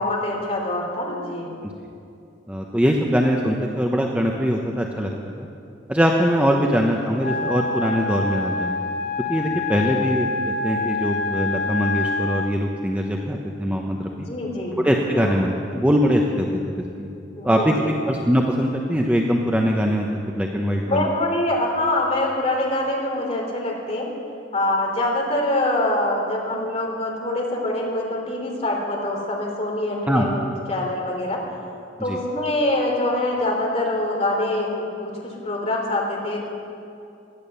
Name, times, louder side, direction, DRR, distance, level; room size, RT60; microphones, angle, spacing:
voice 1, 0.0-1.5 6.5-6.7 9.8-10.0 14.1-14.8 15.1-15.4 17.4-17.9 20.8-24.1 24.5-31.4 32.0-35.1 35.4-36.5, left 1 dB, 35° left, -1 dB, 3.2 m, -24 dB
voice 2, 2.5-5.1 5.4-5.5 5.9-8.8 9.3-14.1 14.7-17.1 17.4-17.7 18.0-21.1 30.1-30.3 32.1-32.2, equal, 5° right, 0 dB, 0.8 m, -22 dB
Wind instrument woodwind instrument, 7.2-12.6, left 3 dB, 60° left, 0.9 m, -26 dB
17.5 x 11.5 x 6.9 m, 2.6 s
head